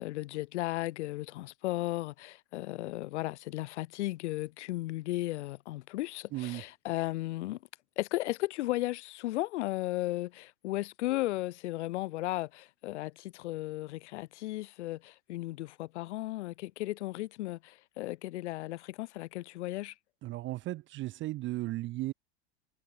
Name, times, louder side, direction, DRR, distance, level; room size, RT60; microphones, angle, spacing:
voice 1, 0.0-7.6 8.0-19.9, left 17 dB, 75° left, 1.8 m, -35 dB
voice 2, 6.3-6.6 20.2-22.1, right 17 dB, 35° right, 0.7 m, -35 dB
supercardioid pair, 120°, 35 cm